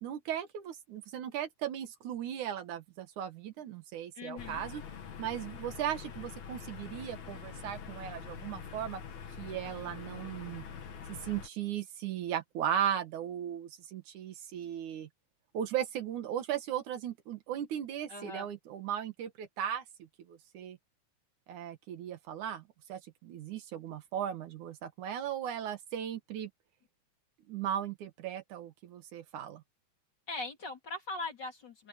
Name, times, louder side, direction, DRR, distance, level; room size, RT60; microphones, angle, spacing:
voice 1, 0.0-4.8 5.2-9.0 9.4-10.6 11.1-15.1 15.5-19.8 20.3-20.8 21.5-22.6 22.9-26.5 27.5-29.6, right 10 dB, 75° right, 2.9 m, -37 dB
voice 2, 4.1-4.6 18.1-18.5 30.3-31.9, left 3 dB, 35° left, 3.3 m, -40 dB
sound 1, 4.4-11.5, left 7 dB, 65° left, 3.2 m, -45 dB
open air
omnidirectional pair, 3.5 m